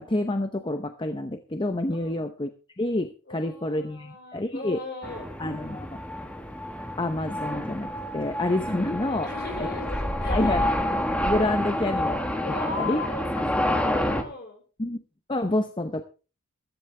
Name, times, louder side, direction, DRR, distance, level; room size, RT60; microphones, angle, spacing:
voice 1, 0.0-2.5 2.8-4.8 5.4-6.0 7.0-9.3 9.6-9.7 10.3-10.6 10.9-12.4 12.8-13.0 14.8-15.0 15.3-16.0, left 1 dB, 20° left, 7 dB, 0.7 m, -28 dB
voice 2, 1.9-2.2 3.3-5.3 9.2-10.7 12.4-14.6, left 3 dB, 45° left, 3 dB, 4.7 m, -37 dB
sound 1, 5.0-14.2, left 1 dB, 5° left, 1.4 m, -28 dB
14.5 x 14.0 x 3.3 m, 0.35 s
head